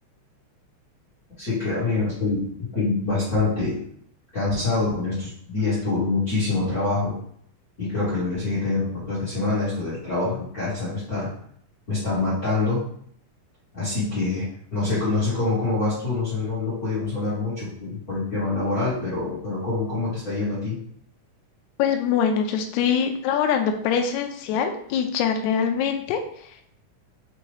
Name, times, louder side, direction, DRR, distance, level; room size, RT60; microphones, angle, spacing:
voice 1, 1.4-3.8 4.3-7.1 7.8-11.3 11.9-12.8 13.7-20.8, left 3 dB, 35° left, -10 dB, 1.7 m, -25 dB
voice 2, 21.8-26.5, left 7 dB, 80° left, 5 dB, 1.7 m, -24 dB
5.7 x 2.6 x 3.2 m, 0.64 s
omnidirectional pair, 3.8 m